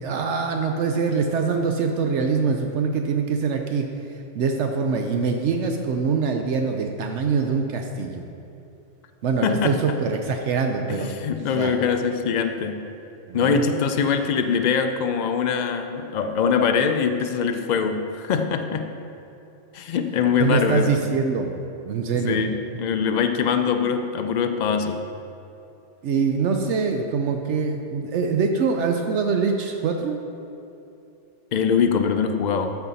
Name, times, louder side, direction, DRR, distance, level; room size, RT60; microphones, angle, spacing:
voice 1, 0.0-8.2 9.2-11.1 11.5-11.7 13.3-13.6 20.4-21.6 21.8-22.4 26.0-30.2, right 5 dB, 70° right, 4 dB, 0.8 m, -24 dB
voice 2, 9.4-10.0 10.9-12.8 13.3-18.9 19.7-21.0 22.2-25.0 31.5-32.8, left 6 dB, 75° left, 7 dB, 0.4 m, -23 dB
13.5 x 4.6 x 4.0 m, 2.8 s
omnidirectional pair, 1.3 m